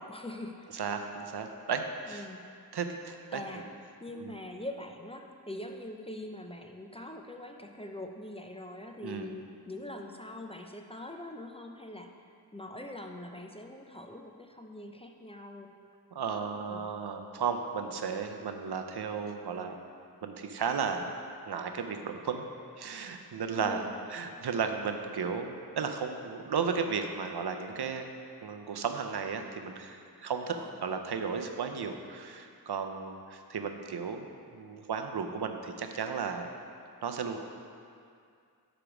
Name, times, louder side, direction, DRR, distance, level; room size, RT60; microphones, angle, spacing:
voice 1, 0.0-0.7 2.1-2.6 3.3-3.7 4.0-15.7 16.7-16.8 23.5-24.0 30.5-30.8, left 1 dB, 15° left, 3 dB, 0.4 m, -43 dB
voice 2, 0.7-2.3 2.7-3.7 4.2-4.3 9.0-9.3 16.1-19.7 20.2-21.1 21.5-22.4 22.8-23.8 24.1-28.1 28.4-34.3 34.5-36.5 37.0-37.4, right 6 dB, 85° right, 5 dB, 0.6 m, -34 dB
5.0 x 5.0 x 5.9 m, 2.3 s
wide cardioid pair, 50°, 38 cm